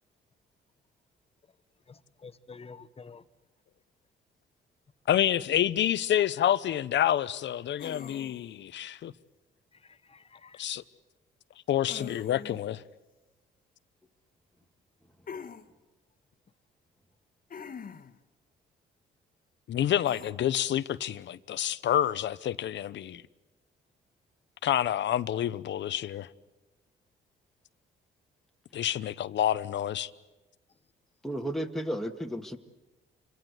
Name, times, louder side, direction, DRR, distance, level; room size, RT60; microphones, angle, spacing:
voice 1, 1.9-3.2 9.8-10.6, left 4 dB, 30° left, 1.2 m, -49 dB
voice 2, 5.1-9.1 10.6-10.8 11.7-12.8 19.7-23.2 24.6-26.3 28.7-30.1, left 11 dB, 65° left, 0.9 m, -28 dB
sound 1, 7.8-8.6 11.9-12.7 15.3-15.6 17.5-18.2 20.0-20.3, left 6 dB, 45° left, 1.4 m, -43 dB
voice 3, 31.2-32.6, equal, ahead, 1.8 m, -33 dB
27.5 x 24.0 x 8.1 m
cardioid pair, 90°, 20 cm